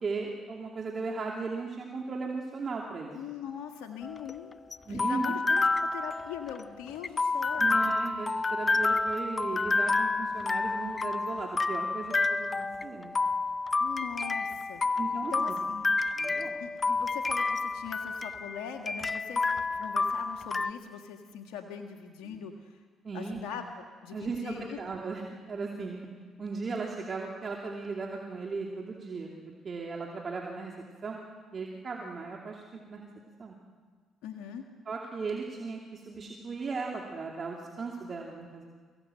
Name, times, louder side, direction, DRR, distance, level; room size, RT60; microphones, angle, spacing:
voice 1, 0.0-3.1 4.9-5.3 7.6-13.1 15.0-15.6 16.2-16.6 22.3-22.4 23.0-23.4 24.1-26.0 26.4-29.3 29.6-30.7 31.0-31.2 31.5-33.1 33.4-33.6 34.9-38.6, right 4 dB, 45° right, -1 dB, 2.6 m, -37 dB
voice 2, 3.1-4.6 4.9-7.8 13.8-15.9 16.6-22.8 23.1-24.8 34.2-34.6, left 8 dB, 80° left, 3 dB, 1.7 m, -41 dB
sound 1, 4.0-20.7, left 3 dB, 30° left, 0.8 m, -29 dB
23.5 x 16.5 x 7.7 m, 1.5 s
supercardioid pair, 65°, 0 cm